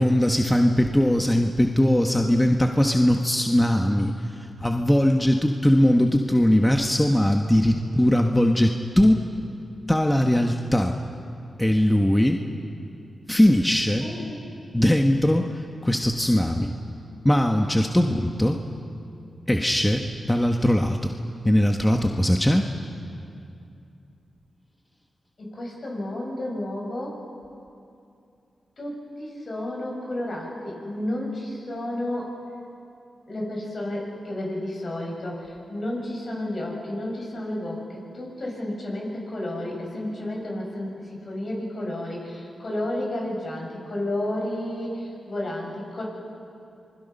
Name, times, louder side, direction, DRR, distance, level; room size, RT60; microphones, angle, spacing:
voice 1, 0.0-9.3 9.9-11.0 11.6-12.5 13.3-14.1 14.7-16.7 17.2-18.6 19.5-21.2 21.4-22.7, left 1 dB, 10° left, 3 dB, 1.4 m, -20 dB
voice 2, 14.0-14.5 25.4-27.2 28.8-32.3 33.3-46.0, left 1 dB, 60° left, -2 dB, 7.1 m, -31 dB
27.0 x 21.5 x 5.7 m, 2.6 s
supercardioid pair, 45°, 0 cm